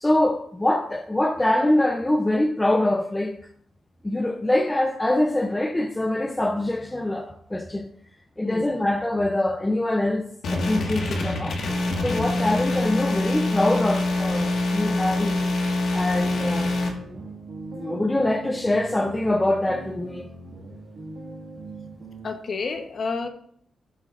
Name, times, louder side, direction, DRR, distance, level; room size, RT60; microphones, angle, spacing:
voice 1, 0.0-3.3 4.0-7.9 8.4-10.2 10.5-11.6 12.0-15.5 15.9-16.7 17.7-20.3, left 1 dB, 10° left, 0.5 m, -24 dB
sound 1, 10.4-16.9, left 2 dB, 60° left, 1.5 m, -25 dB
sound 2, 16.0-22.3, right 3 dB, 55° right, 1.7 m, -40 dB
voice 2, 22.2-23.3, left 4 dB, 40° left, 0.9 m, -30 dB
11.5 x 7.4 x 2.4 m
wide cardioid pair, 165°, 0 cm